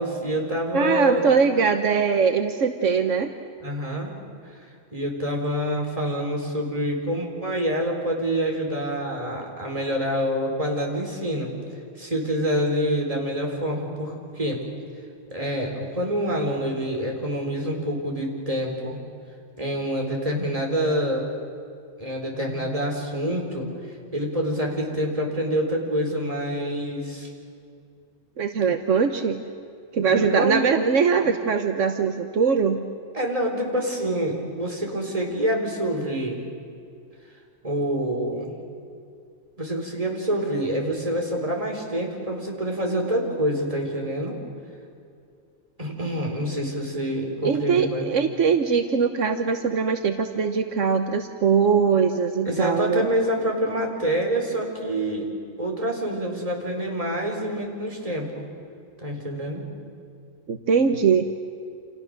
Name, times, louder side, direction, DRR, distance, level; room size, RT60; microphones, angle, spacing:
voice 1, 0.0-1.2 3.6-4.1 4.9-11.5 12.0-14.6 15.3-19.0 19.6-21.2 22.0-23.7 24.1-27.3 30.1-30.6 31.2-31.3 33.1-36.4 37.6-38.5 39.6-44.4 45.8-48.1 52.4-55.3 55.6-58.3 59.0-59.7, equal, 30° right, 0 dB, 4.3 m, -26 dB
voice 2, 0.7-3.3 28.4-29.4 29.9-32.8 47.4-53.1 60.5-61.2, right 6 dB, 75° right, 6 dB, 1.4 m, -21 dB
29.5 x 27.5 x 6.7 m, 2.4 s
omnidirectional pair, 1.3 m